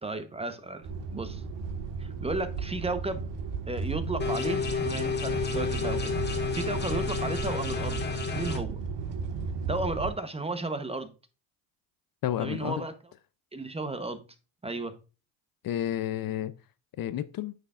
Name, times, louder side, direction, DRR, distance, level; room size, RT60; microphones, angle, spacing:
voice 1, 0.0-1.4 2.0-3.2 3.7-8.0 8.3-8.8 9.7-11.1 12.4-12.9 13.5-14.2 14.6-15.0, right 2 dB, 15° right, 0.9 m, -34 dB
sound 1, 0.8-10.1, right 5 dB, 65° right, 1.6 m, -35 dB
sound 2, 4.2-8.6, left 6 dB, 20° left, 1.7 m, -31 dB
voice 2, 12.2-12.8 15.6-16.5 17.0-17.5, left 12 dB, 50° left, 0.6 m, -31 dB
9.2 x 6.6 x 2.5 m
cardioid pair, 90°, 46 cm